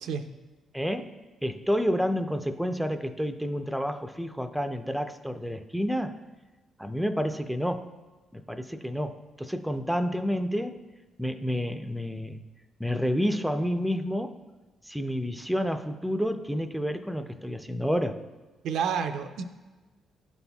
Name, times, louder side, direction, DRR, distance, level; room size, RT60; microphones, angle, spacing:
voice 1, 0.7-6.2 6.8-7.9 8.3-10.8 11.2-12.4 12.8-14.4 14.8-18.2, equal, ahead, 8 dB, 0.4 m, -29 dB
voice 2, 18.6-19.4, right 7 dB, 80° right, 7 dB, 0.4 m, -29 dB
11.5 x 4.1 x 2.3 m, 1.2 s
cardioid pair, 90°, 0 cm